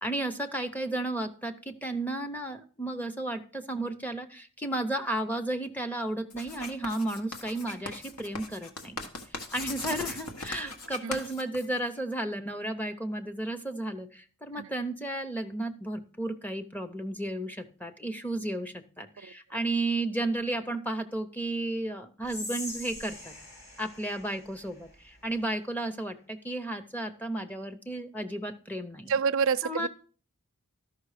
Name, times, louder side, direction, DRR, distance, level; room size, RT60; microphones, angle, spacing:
voice 1, 0.0-9.0 9.5-23.3 23.8-29.1 29.6-29.9, right 1 dB, 5° left, 0.7 m, -33 dB
Writing, 6.3-12.1, left 3 dB, 90° left, 1.4 m, -39 dB
Whispering, 22.2-25.5, left 1 dB, 45° left, 3.3 m, -43 dB
voice 2, 29.1-29.9, right 6 dB, 60° right, 0.4 m, -28 dB
12.5 x 5.7 x 4.9 m
head